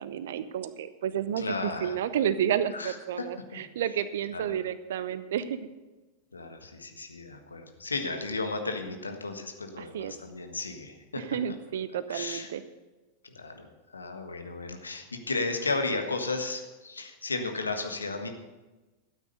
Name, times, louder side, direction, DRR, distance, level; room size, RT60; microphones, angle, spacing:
voice 1, 0.0-5.6 9.8-10.1 11.2-12.6, right 9 dB, 60° right, 14 dB, 0.8 m, -31 dB
voice 2, 1.4-2.0 2.7-3.3 3.5-3.6 4.3-4.4 6.3-11.2 12.1-12.5 13.2-18.3, left 3 dB, 75° left, 5 dB, 1.5 m, -34 dB
13.0 x 9.1 x 6.8 m, 1.1 s
figure-of-eight pair, 90°, 0 cm